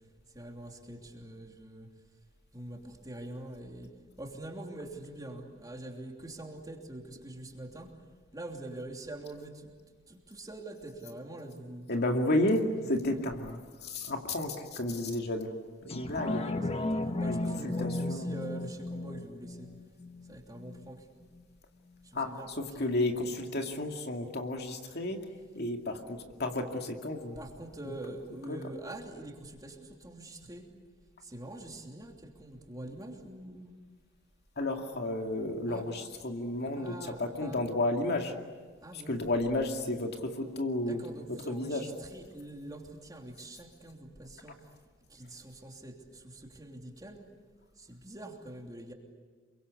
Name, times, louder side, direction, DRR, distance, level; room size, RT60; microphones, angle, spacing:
voice 1, 0.3-1.9 2.5-3.9 4.2-7.9 8.3-9.7 10.1-11.8 13.1-13.2 16.2-19.7 20.3-21.0 22.0-22.8 27.4-30.6 31.2-33.8 35.7-35.8 36.8-37.6 38.8-39.2 40.9-44.6 45.1-47.2 47.8-48.9, right 1 dB, 20° right, 2 dB, 3.0 m, -44 dB
voice 2, 11.9-15.6 15.8-16.4 17.3-18.3 22.1-25.3 25.6-27.4 27.8-27.9 28.5-28.6 34.6-38.3 38.9-41.9, left 1 dB, 55° left, 3 dB, 2.3 m, -32 dB
sound 1, 15.9-20.9 21.4-21.5, left 2 dB, 30° left, 1.4 m, -35 dB
28.0 x 23.5 x 8.4 m, 1.5 s
head